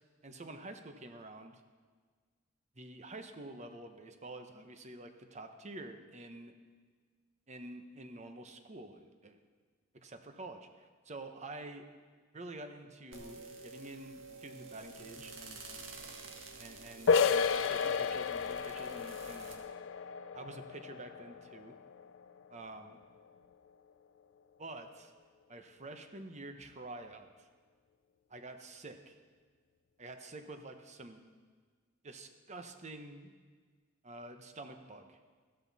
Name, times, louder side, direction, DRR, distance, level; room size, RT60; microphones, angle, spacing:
voice 1, 0.2-1.6 2.8-6.5 7.5-9.4 9.9-11.8 12.3-15.6 16.6-19.7 20.3-21.8 22.5-23.0 24.6-25.1 25.5-27.5 28.3-29.2 30.0-31.3 32.0-33.3 34.0-35.2, right 2 dB, 35° right, 6 dB, 1.0 m, -48 dB
sound 1, 13.1-19.5, right 3 dB, 80° right, 1.8 m, -50 dB
sound 2, 17.1-22.6, left 5 dB, 70° left, 0.5 m, -32 dB
15.0 x 13.5 x 4.1 m, 1.5 s
head